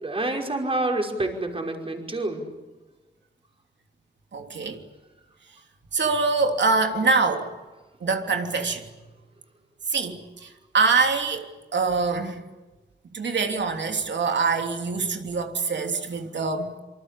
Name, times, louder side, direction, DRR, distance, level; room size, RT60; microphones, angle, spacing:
voice 1, 0.0-2.4, right 2 dB, 30° right, 5.3 m, -27 dB
voice 2, 4.3-4.8 5.9-7.6 8.0-8.9 9.9-12.4 13.1-16.7, right 4 dB, 75° right, 3.2 m, -24 dB
26.5 x 25.5 x 8.4 m
wide cardioid pair, 120°, 19 cm